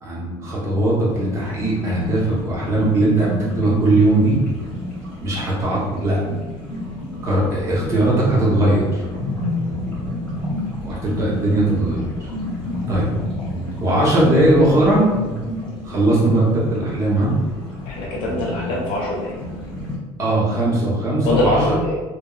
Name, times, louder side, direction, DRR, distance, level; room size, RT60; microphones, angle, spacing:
voice 1, 0.0-4.4 5.2-6.2 6.8-6.9 7.2-9.0 10.8-12.3 12.9-13.1 13.8-15.1 15.8-17.3 20.2-21.6, right 2 dB, 30° right, -4 dB, 0.7 m, -19 dB
sound 1, 1.1-20.0, left 1 dB, 10° left, 0.8 m, -30 dB
voice 2, 17.9-19.3 21.2-22.0, left 2 dB, 50° left, -3 dB, 0.4 m, -23 dB
2.9 x 2.0 x 2.2 m, 1.3 s
cardioid pair, 165°, 11 cm